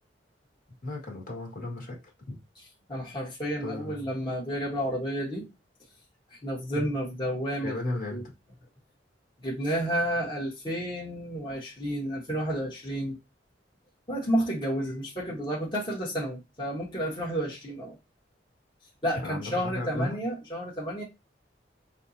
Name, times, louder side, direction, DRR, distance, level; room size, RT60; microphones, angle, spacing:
voice 1, 0.8-2.0 2.3-2.4 3.6-4.0 6.7-6.9 7.6-8.3 19.2-20.2, left 2 dB, 50° left, 1.7 m, -34 dB
voice 2, 2.9-5.5 6.3-8.2 9.4-13.2 14.1-18.0 19.0-21.0, equal, 25° left, 1.4 m, -31 dB
5.7 x 2.9 x 2.7 m
head